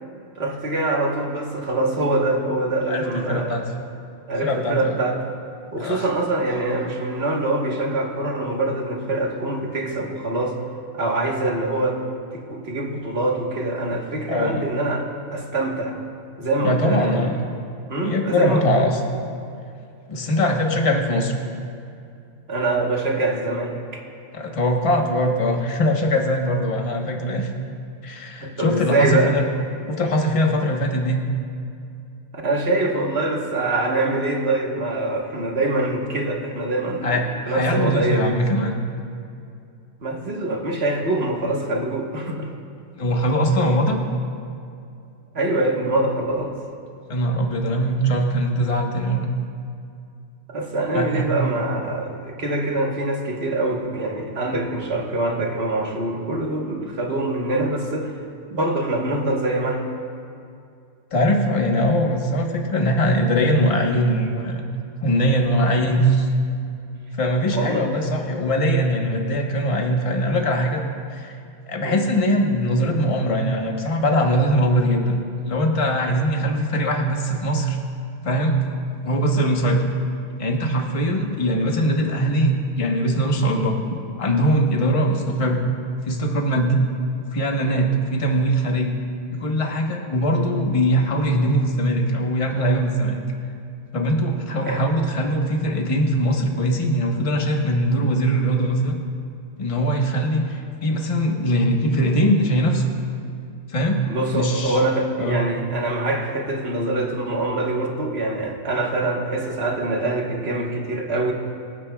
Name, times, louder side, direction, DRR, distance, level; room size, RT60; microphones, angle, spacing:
voice 1, 0.4-3.6 4.3-5.2 5.7-10.6 10.9-12.0 12.3-16.0 16.4-17.3 17.9-18.8 22.5-24.0 28.4-29.4 32.4-37.2 37.5-38.4 40.0-42.5 45.3-46.5 50.5-58.2 58.5-59.9 67.5-67.8 71.8-72.1 94.6-94.8 104.1-111.3, right 2 dB, 50° right, 0 dB, 1.6 m, -24 dB
voice 2, 2.9-3.6 4.4-5.0 5.8-6.1 14.3-14.6 16.6-17.4 18.0-19.0 20.1-21.3 24.3-27.5 28.0-29.4 29.9-31.2 37.0-38.8 43.0-44.0 47.1-49.3 50.9-51.3 61.1-64.6 65.0-66.3 67.1-70.8 71.1-71.3 71.7-75.2 75.5-77.8 78.2-78.5 79.0-79.9 80.4-83.8 84.2-85.6 86.0-86.8 87.2-89.0 89.3-93.2 93.9-99.0 99.6-102.8 103.7-104.0 104.3-104.8 105.2-105.4, equal, 25° left, 1 dB, 1.1 m, -21 dB
25.0 x 9.6 x 2.3 m, 2.5 s
omnidirectional pair, 1.4 m